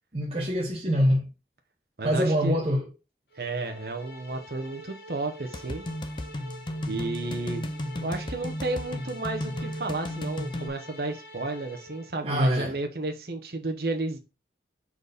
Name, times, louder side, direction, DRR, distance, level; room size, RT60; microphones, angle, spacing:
voice 1, 0.1-1.3 2.0-2.9 12.2-12.8, equal, 30° right, 0.9 m, -25 dB
voice 2, 2.0-2.6 3.4-5.8 6.9-7.6 8.0-14.2, right 2 dB, 60° right, 1.0 m, -32 dB
sound 1, 3.3-12.2, equal, 65° left, 1.3 m, -46 dB
sound 2, 5.5-10.7, left 1 dB, 25° left, 0.5 m, -34 dB
4.6 x 4.1 x 5.0 m
head